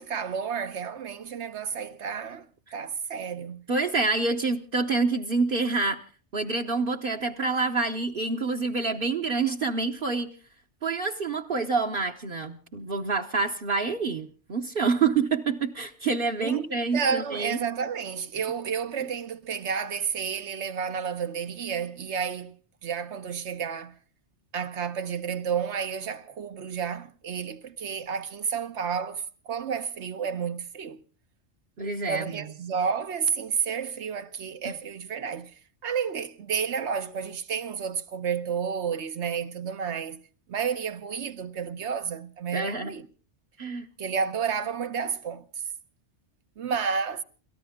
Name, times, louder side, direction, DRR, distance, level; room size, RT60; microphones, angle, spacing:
voice 1, 0.0-2.5 2.7-3.6 16.4-22.5 22.8-23.9 24.5-31.0 32.0-35.5 35.8-40.2 40.5-43.1 44.0-45.4 46.6-47.2, right 6 dB, 75° right, 1.3 m, -31 dB
voice 2, 3.7-6.0 6.3-10.3 10.8-17.6 31.8-32.4 34.6-34.7 42.5-42.9 43.6-43.9, right 4 dB, 55° right, 1.1 m, -27 dB
29.0 x 14.0 x 3.6 m
omnidirectional pair, 1.2 m